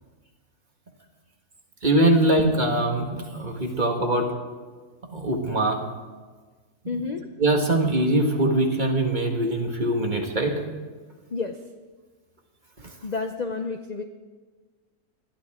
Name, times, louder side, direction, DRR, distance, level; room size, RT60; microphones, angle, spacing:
voice 1, 1.8-4.3 5.1-5.8 6.9-7.0 7.4-10.6, right 1 dB, 30° right, 2 dB, 1.7 m, -22 dB
voice 2, 6.9-7.2 11.3-11.6 13.0-14.0, left 4 dB, 45° left, 6 dB, 0.5 m, -30 dB
20.0 x 13.0 x 3.6 m, 1.4 s
omnidirectional pair, 1.6 m